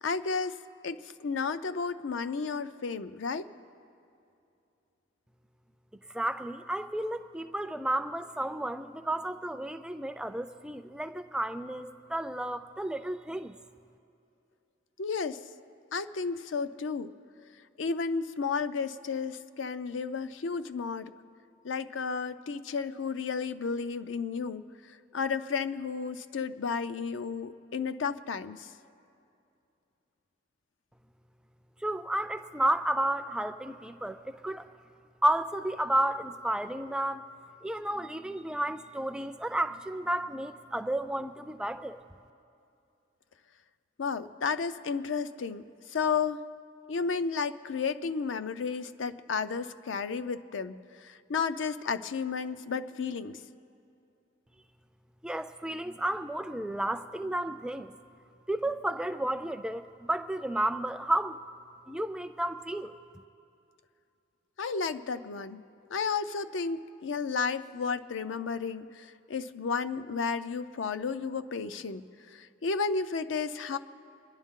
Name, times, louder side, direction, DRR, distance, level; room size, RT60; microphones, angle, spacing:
voice 1, 0.0-0.6 0.8-3.5 15.0-15.4 15.9-17.1 17.8-21.1 21.6-24.6 25.1-28.7 44.0-45.6 45.9-46.4 46.9-53.4 64.6-65.6 65.9-72.0 72.3-73.8, left 5 dB, 75° left, 12 dB, 0.5 m, -32 dB
voice 2, 6.1-13.5 31.8-34.7 35.2-37.3 37.6-42.0 55.2-57.9 58.5-61.4 61.9-62.9, right 1 dB, 5° right, 10 dB, 0.3 m, -32 dB
25.5 x 10.5 x 3.7 m, 2.7 s
head